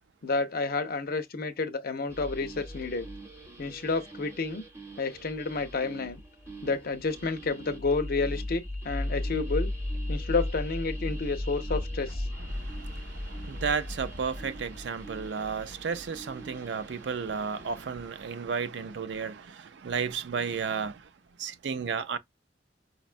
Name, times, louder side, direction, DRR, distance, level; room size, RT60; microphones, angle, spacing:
voice 1, 0.2-3.1 3.6-4.6 5.0-6.2 6.6-9.7 10.1-12.3, left 3 dB, 55° left, 0.6 m, -30 dB
sound 1, 2.1-18.0, left 1 dB, 15° right, 0.9 m, -37 dB
voice 2, 12.5-21.0 21.4-22.2, right 6 dB, 70° right, 0.4 m, -33 dB
5.1 x 2.2 x 2.5 m
head